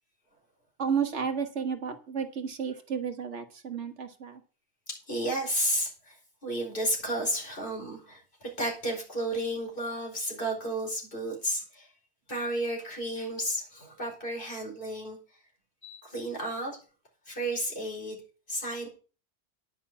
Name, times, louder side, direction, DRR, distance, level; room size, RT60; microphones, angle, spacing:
voice 1, 0.8-4.4, right 6 dB, 80° right, 7 dB, 1.7 m, -32 dB
voice 2, 4.9-6.2 6.4-11.9 12.3-15.2 15.8-16.8 17.3-18.2 18.5-18.9, right 1 dB, 50° left, 0 dB, 4.9 m, -32 dB
10.0 x 5.9 x 8.4 m, 0.37 s
omnidirectional pair, 1.2 m